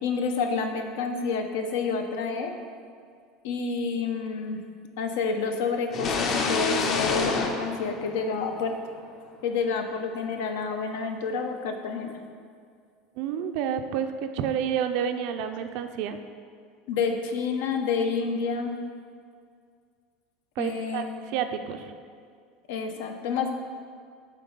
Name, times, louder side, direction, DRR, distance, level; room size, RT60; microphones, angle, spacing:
voice 1, 0.0-2.5 3.4-4.6 5.0-8.7 9.4-12.2 16.9-18.8 20.6-21.2 22.7-23.5, left 5 dB, 80° left, 5 dB, 0.7 m, -29 dB
sound 1, 5.9-8.7, left 4 dB, 35° left, 0.6 m, -28 dB
voice 2, 13.2-16.2 20.6-21.9, right 8 dB, 60° right, 7 dB, 0.4 m, -29 dB
7.4 x 3.9 x 5.3 m, 2.2 s
cardioid pair, 160°, 0 cm